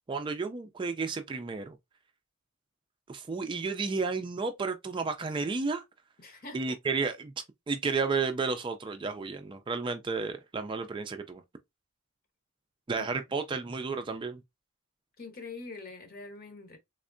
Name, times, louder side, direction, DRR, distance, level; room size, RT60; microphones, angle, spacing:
voice 1, 0.1-1.8 3.1-5.8 6.5-7.3 7.7-11.4 12.9-14.4, right 4 dB, 25° right, 0.3 m, -32 dB
voice 2, 6.2-6.8 13.0-13.1 15.2-16.8, left 3 dB, 45° left, 1.0 m, -44 dB
3.5 x 3.2 x 2.5 m
head